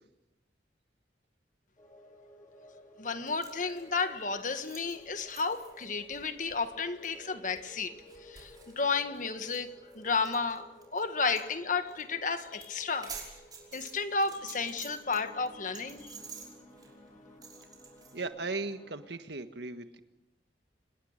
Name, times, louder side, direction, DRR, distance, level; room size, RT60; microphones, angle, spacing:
sound 1, 1.8-19.1, equal, 25° left, 5.4 m, -55 dB
voice 1, 3.0-7.9 8.2-9.7 9.9-13.1 13.7-16.2, left 4 dB, 45° left, 1.5 m, -32 dB
sound 2, 3.3-11.0 11.3-11.5 11.7-12.0 12.3-15.2 15.5-18.2, right 5 dB, 20° right, 5.4 m, -49 dB
voice 2, 18.1-20.0, right 3 dB, 70° right, 1.5 m, -37 dB
27.0 x 20.5 x 6.6 m
head